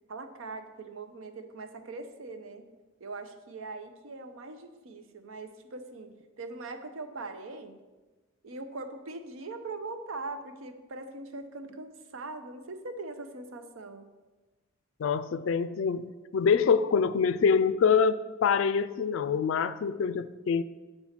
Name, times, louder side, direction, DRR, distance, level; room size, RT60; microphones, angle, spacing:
voice 1, 0.1-2.7 3.0-7.8 8.4-14.1, right 3 dB, 85° right, 8 dB, 0.7 m, -41 dB
voice 2, 15.0-20.6, left 6 dB, 70° left, 14 dB, 0.3 m, -25 dB
6.8 x 4.4 x 5.7 m, 1.2 s
head